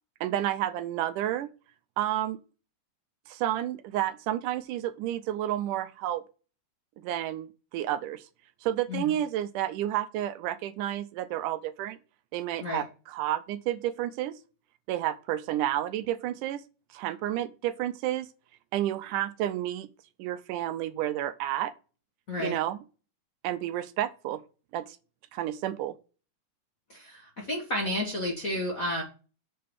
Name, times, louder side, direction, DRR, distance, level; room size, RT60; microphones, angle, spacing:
voice 1, 0.2-1.5 2.0-2.4 3.3-6.2 7.0-8.3 8.6-12.0 12.3-14.4 14.9-16.6 16.9-18.3 18.7-19.9 20.2-21.7 22.4-22.8 23.4-24.4 24.7-25.0 25.3-26.0, right 12 dB, 80° right, 2.1 m, -30 dB
voice 2, 26.9-29.0, left 1 dB, 35° left, 1.3 m, -31 dB
8.4 x 3.9 x 6.4 m
omnidirectional pair, 3.8 m